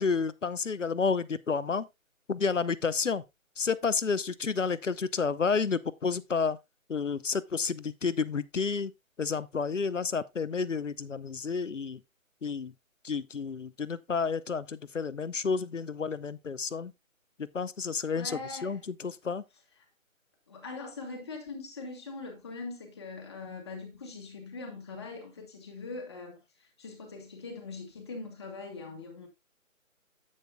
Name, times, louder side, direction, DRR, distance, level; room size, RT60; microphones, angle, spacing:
voice 1, 0.0-1.9 2.3-3.2 3.6-6.6 6.9-8.9 9.2-12.0 12.4-12.7 13.0-16.9 17.4-19.4, left 5 dB, 60° left, 0.8 m, -30 dB
voice 2, 18.1-18.8 20.5-29.3, left 3 dB, 20° left, 1.9 m, -42 dB
9.6 x 9.1 x 2.2 m
figure-of-eight pair, 165°, 42 cm